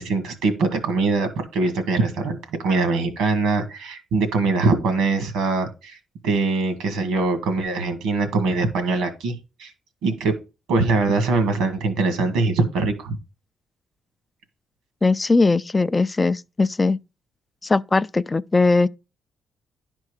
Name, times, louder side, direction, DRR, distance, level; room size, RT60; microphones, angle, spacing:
voice 1, 0.0-6.0 6.2-9.7 10.0-10.3 10.7-13.2, right 3 dB, 90° right, 1.9 m, -22 dB
voice 2, 15.0-17.0 17.6-18.9, left 3 dB, 25° left, 0.3 m, -19 dB
10.5 x 4.5 x 4.9 m
cardioid pair, 90°, 0 cm